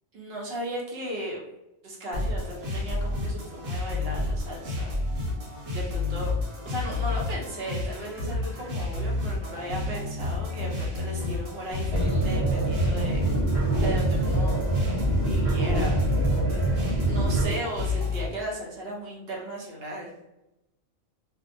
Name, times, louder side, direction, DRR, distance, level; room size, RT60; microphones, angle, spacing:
voice 1, 0.1-1.4 1.8-4.9 5.7-6.3 6.6-13.3 13.8-14.6 15.2-16.0 16.5-20.1, right 1 dB, 55° right, -2 dB, 0.8 m, -36 dB
sound 1, 2.1-18.3, left 2 dB, 75° right, 1.1 m, -30 dB
sound 2, 11.9-17.5, right 2 dB, 20° right, 0.9 m, -25 dB
2.5 x 2.1 x 2.6 m, 0.92 s
omnidirectional pair, 1.4 m